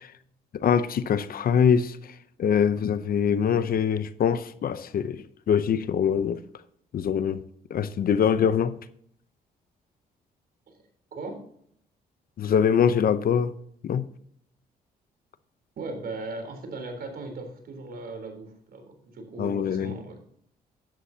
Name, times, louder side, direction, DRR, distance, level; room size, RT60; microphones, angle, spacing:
voice 1, 0.5-2.0 2.4-6.4 6.9-7.4 7.7-8.7 12.4-13.5 13.8-14.1 19.4-20.0, left 7 dB, 60° left, 0.8 m, -23 dB
voice 2, 11.1-11.5 15.8-20.2, right 3 dB, 60° right, 3.6 m, -38 dB
11.5 x 11.0 x 2.8 m
cardioid pair, 75°, 17 cm